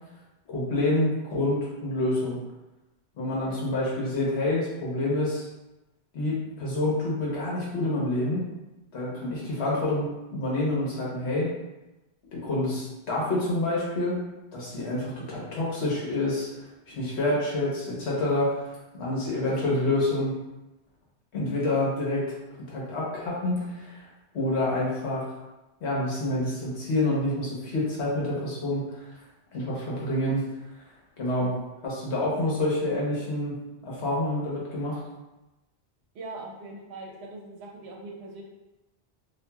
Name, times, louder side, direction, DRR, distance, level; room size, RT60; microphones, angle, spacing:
voice 1, 0.5-2.4 3.2-5.5 6.1-8.5 8.9-11.5 12.3-14.2 14.5-18.7 18.9-20.3 21.3-22.4 22.7-24.1 24.3-25.3 25.8-29.1 29.5-30.4 31.2-31.5 31.8-33.5 33.8-35.0, left 1 dB, 75° left, -5 dB, 1.1 m, -27 dB
voice 2, 36.1-38.4, right 2 dB, 75° right, 0 dB, 0.8 m, -41 dB
2.8 x 2.5 x 2.2 m, 1.0 s
omnidirectional pair, 1.1 m